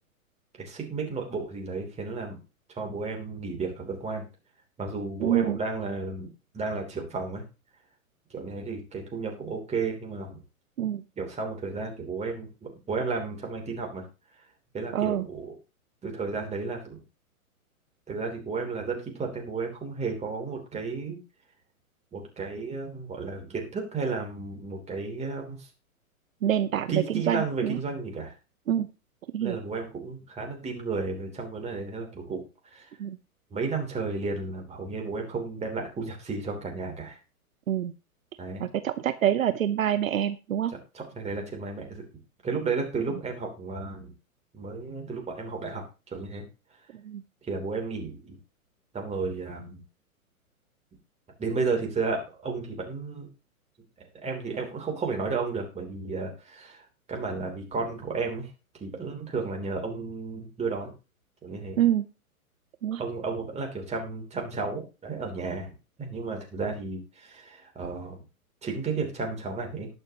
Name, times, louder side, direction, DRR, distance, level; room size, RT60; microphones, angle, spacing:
voice 1, 0.6-2.4 2.7-4.2 4.8-6.3 6.5-7.4 8.3-10.4 11.2-14.0 14.7-15.6 16.0-17.0 18.1-21.2 22.1-25.7 26.9-28.3 29.4-32.4 32.7-32.9 33.5-37.2 38.4-38.7 40.7-42.0 42.4-44.1 44.5-46.4 47.4-48.4 48.9-49.8 51.4-53.3 54.2-56.8 57.1-58.5 58.8-60.9 61.4-61.8 63.0-65.7 66.0-68.2 68.6-69.9, right 4 dB, 15° right, 2 dB, 3.1 m, -33 dB
voice 2, 5.2-5.6 10.8-11.0 14.9-15.2 26.4-27.8 28.7-28.9 29.3-29.6 33.0-33.2 37.7-37.9 38.6-40.7 47.0-47.2 61.8-62.0 62.8-63.0, right 10 dB, 65° right, 12 dB, 0.9 m, -26 dB
19.0 x 6.6 x 2.9 m, 0.30 s
figure-of-eight pair, 115°, 43 cm